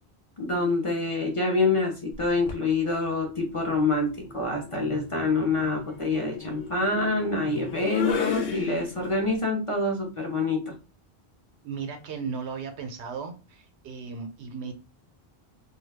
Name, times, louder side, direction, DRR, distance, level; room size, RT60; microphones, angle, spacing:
voice 1, 0.4-10.7, left 3 dB, 35° left, 0 dB, 0.6 m, -26 dB
sound 1, 2.1-2.7 4.0-9.3, left 6 dB, 70° left, 0.8 m, -34 dB
voice 2, 11.6-14.7, right 5 dB, 85° right, 6 dB, 0.9 m, -36 dB
2.3 x 2.3 x 3.3 m, 0.31 s
omnidirectional pair, 1.1 m